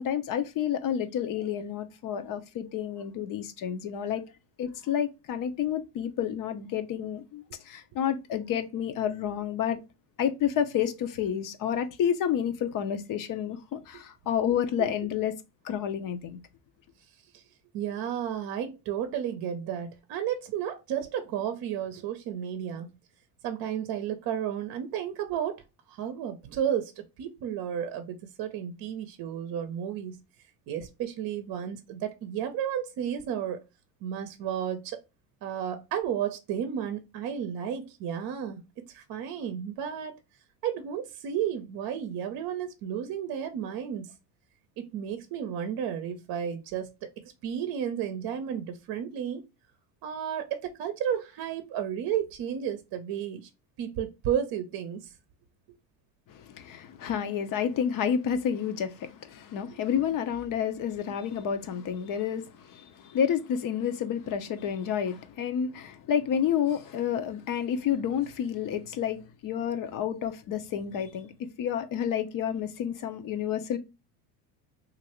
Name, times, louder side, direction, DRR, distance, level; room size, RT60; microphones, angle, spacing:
voice 1, 0.0-4.2 4.6-9.8 10.2-15.4 15.6-16.4 56.3-71.3 71.6-73.8, left 8 dB, 45° left, 0.7 m, -30 dB
voice 2, 17.7-22.9 23.4-30.2 30.7-33.6 34.0-35.0 35.4-38.6 38.9-40.2 40.6-44.1 44.8-49.4 50.0-53.5 53.8-55.1 59.7-60.0, right 9 dB, 50° right, 0.7 m, -33 dB
3.1 x 2.6 x 2.9 m
supercardioid pair, 90°, 46 cm